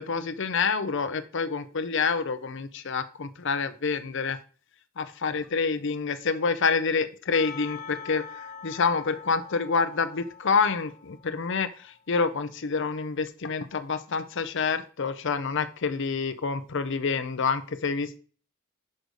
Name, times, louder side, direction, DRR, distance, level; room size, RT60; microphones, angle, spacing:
voice 1, 0.0-4.4 5.0-18.2, left 5 dB, 60° left, 12 dB, 0.6 m, -27 dB
Percussion / Church bell, 7.3-11.7, left 6 dB, 40° left, 1.2 m, -43 dB
6.5 x 5.2 x 6.3 m, 0.40 s
head